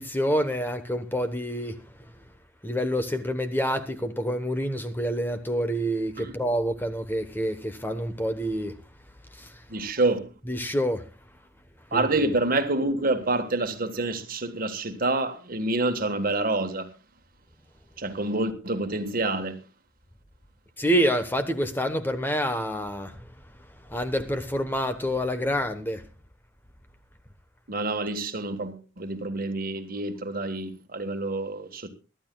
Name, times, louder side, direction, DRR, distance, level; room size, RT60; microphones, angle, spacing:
voice 1, 0.0-1.8 2.6-8.8 9.3-9.5 10.5-11.0 11.9-12.2 20.8-23.3 23.9-26.0, equal, 10° left, 1.1 m, -27 dB
voice 2, 9.7-10.3 11.9-16.9 18.0-19.6 27.7-31.9, right 2 dB, 50° right, 1.5 m, -27 dB
24.0 x 12.5 x 2.3 m
head